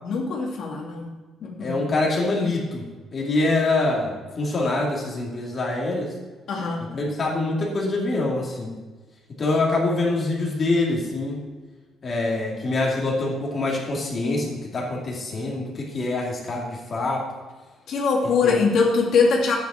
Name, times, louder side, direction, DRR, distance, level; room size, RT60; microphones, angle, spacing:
voice 1, 0.0-1.1 1.4-1.8 6.5-6.9 17.9-19.6, left 4 dB, 60° left, -1 dB, 2.2 m, -22 dB
voice 2, 1.6-6.1 6.9-8.7 9.4-11.4 12.0-17.3 18.4-18.6, left 2 dB, 35° left, -2 dB, 2.5 m, -25 dB
11.5 x 9.3 x 4.3 m, 1.3 s
cardioid pair, 150°, 0 cm